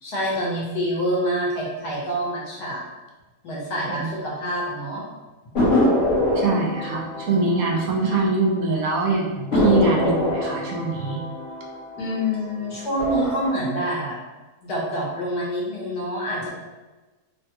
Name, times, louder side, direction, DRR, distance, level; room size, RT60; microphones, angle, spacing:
voice 1, 0.0-2.8 3.4-5.0 12.0-14.2 14.6-16.5, equal, 85° left, -5 dB, 1.5 m, -26 dB
sound 1, 5.6-8.6 8.9-9.0 9.5-12.5 12.9-13.5, left 1 dB, 65° left, 1.2 m, -24 dB
voice 2, 6.3-11.2, right 3 dB, 70° right, -1 dB, 1.0 m, -23 dB
3.2 x 2.2 x 2.9 m, 1.2 s
omnidirectional pair, 1.6 m